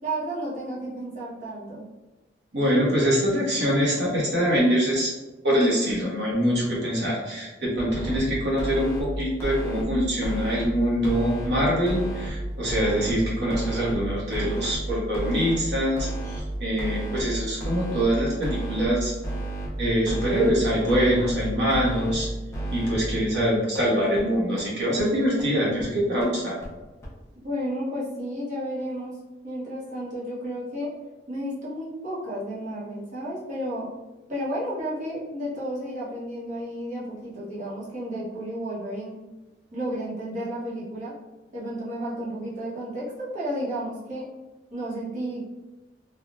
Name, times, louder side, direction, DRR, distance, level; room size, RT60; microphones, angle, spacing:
voice 1, 0.0-1.8 27.4-29.2 29.4-30.9 31.3-33.9 34.3-39.1 39.7-41.2 41.5-44.3 44.7-45.5, equal, 40° right, -8 dB, 1.1 m, -32 dB
voice 2, 2.5-5.1 5.4-19.1 19.8-22.3 22.7-26.5, equal, 65° right, -6 dB, 1.2 m, -24 dB
sound 1, 7.8-8.2 8.6-9.0 9.4-9.8 10.2-10.6 11.0-11.5 11.9-12.3 12.7-13.1 13.5-13.9 14.3-14.7 15.1-15.6 16.0-16.4 16.8-17.2 17.6-18.0 18.4-18.9 19.2-19.7 20.1-20.5 20.9-21.3 21.7-22.1 22.5-22.9 23.3-23.4 23.8-23.9 24.2-24.3 24.6-24.7 25.0-25.1 25.4-25.5 25.8-25.9 26.2-26.3 26.6-26.7 27.0-27.1, right 2 dB, 15° left, 0.7 m, -31 dB
3.5 x 2.3 x 2.5 m, 1.1 s
head